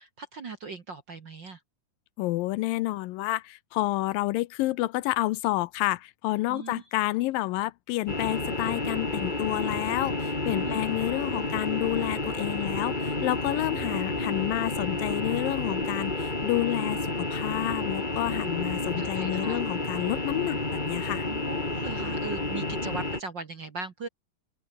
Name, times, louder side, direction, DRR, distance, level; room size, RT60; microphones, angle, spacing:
voice 1, 0.0-1.6 6.5-6.8 10.5-10.8 18.5-19.6 21.2-24.1, right 4 dB, 45° right, 1.7 m, -39 dB
voice 2, 2.2-21.3, left 18 dB, 80° left, 2.4 m, -29 dB
sound 1, 8.1-23.2, left 2 dB, 15° left, 2.5 m, -30 dB
open air
omnidirectional pair, 4.0 m